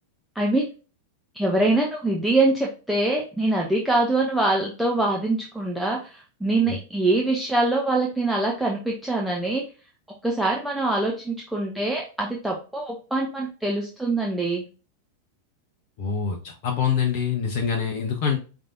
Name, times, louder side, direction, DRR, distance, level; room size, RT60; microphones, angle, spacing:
voice 1, 1.3-9.6 10.2-14.6, right 2 dB, 5° right, -2 dB, 0.8 m, -24 dB
voice 2, 16.0-18.4, left 7 dB, 40° left, 1 dB, 0.8 m, -25 dB
5.1 x 3.5 x 2.7 m, 0.34 s
figure-of-eight pair, 90°, 0 cm